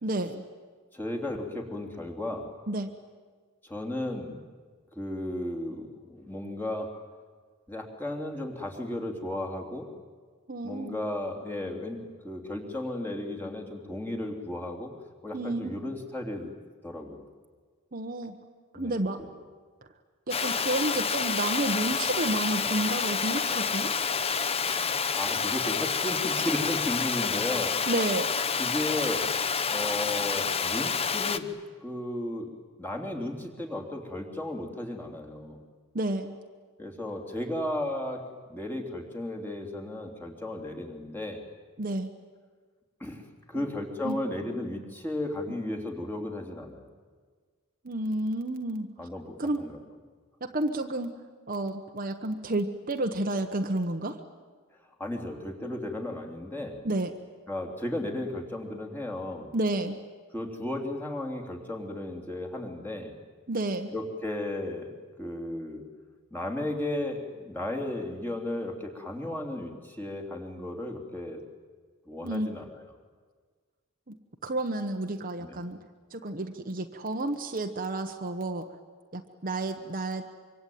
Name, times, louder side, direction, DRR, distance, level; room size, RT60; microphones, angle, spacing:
voice 1, 0.0-0.4 2.7-2.9 10.5-10.9 15.3-15.8 17.9-18.3 18.7-19.2 20.3-23.9 27.9-28.3 35.9-36.4 41.8-42.1 43.5-43.6 44.0-44.2 47.8-48.9 49.4-49.6 50.4-51.1 51.5-54.2 56.8-57.1 59.5-60.0 63.5-63.9 72.2-72.5 74.1-74.2 74.4-75.8 76.1-78.7 79.1-80.2, right 2 dB, 40° right, 5 dB, 1.2 m, -30 dB
voice 2, 0.9-2.5 3.6-4.4 4.9-6.9 7.7-9.9 10.6-14.9 15.2-16.5 16.8-17.2 18.7-19.0 25.0-27.7 28.6-29.3 29.7-31.5 31.8-32.5 32.8-35.6 36.8-38.2 38.5-41.5 43.0-46.9 49.0-49.8 55.0-56.8 57.5-59.5 60.3-63.1 63.9-65.8 66.3-71.4 72.0-72.8 75.4-75.6, left 1 dB, 10° left, 1 dB, 3.2 m, -34 dB
Water, 20.3-31.4, left 5 dB, 25° left, 0.9 m, -28 dB
25.0 x 24.5 x 9.3 m, 1.5 s
head